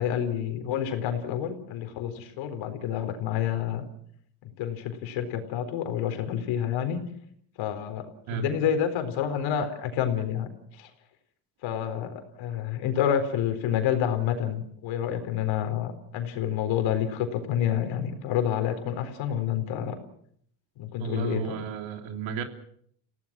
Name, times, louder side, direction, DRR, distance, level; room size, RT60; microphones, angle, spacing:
voice 1, 0.0-3.9 4.6-7.0 7.6-8.0 8.3-10.5 10.7-10.9 11.6-20.0 20.8-21.6, left 9 dB, 70° left, 7 dB, 4.2 m, -28 dB
voice 2, 21.0-22.4, right 6 dB, 65° right, 5 dB, 3.3 m, -33 dB
30.0 x 17.5 x 6.2 m, 0.65 s
cardioid pair, 125°, 48 cm